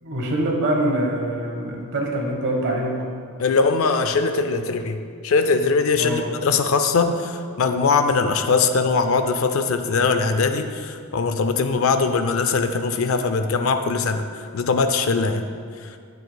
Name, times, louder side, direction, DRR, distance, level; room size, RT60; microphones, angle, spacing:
voice 1, 0.0-3.0 5.9-6.3, right 1 dB, 55° right, -1 dB, 1.3 m, -24 dB
voice 2, 3.4-14.2 14.5-15.5 15.8-15.9, left 4 dB, 65° left, 8 dB, 0.4 m, -21 dB
10.0 x 6.5 x 2.3 m, 2.2 s
head